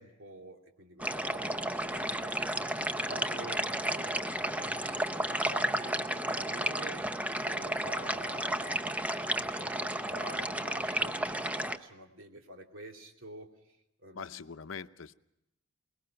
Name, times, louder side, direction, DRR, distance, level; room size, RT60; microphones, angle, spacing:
voice 1, 0.0-7.1 7.4-8.8 9.3-14.4, right 1 dB, 75° right, 3 dB, 2.7 m, -48 dB
sound 1, 1.0-11.8, right 1 dB, 5° right, 0.8 m, -33 dB
voice 2, 14.1-15.1, left 5 dB, 70° left, 13 dB, 0.7 m, -42 dB
23.5 x 21.0 x 5.7 m, 0.86 s
head